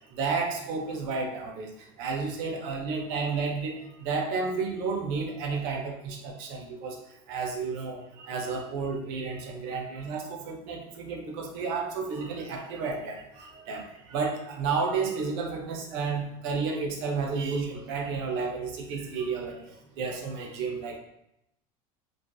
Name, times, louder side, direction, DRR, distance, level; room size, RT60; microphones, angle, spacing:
voice 1, 0.1-1.7 2.0-7.0 7.3-19.5 20.0-21.0, right 4 dB, 65° right, 2 dB, 0.6 m, -31 dB
2.5 x 2.5 x 2.2 m, 0.80 s
supercardioid pair, 110°, 18 cm